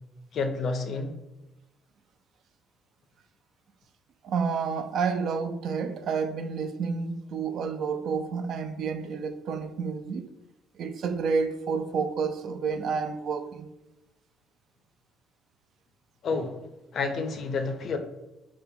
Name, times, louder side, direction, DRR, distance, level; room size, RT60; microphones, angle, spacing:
voice 1, 0.3-1.1 16.2-16.6 16.9-18.0, left 4 dB, 50° left, 0.4 m, -29 dB
voice 2, 4.2-10.3 10.8-13.7, right 5 dB, 60° right, 0.3 m, -30 dB
4.1 x 2.2 x 2.6 m
cardioid pair, 135°, 0 cm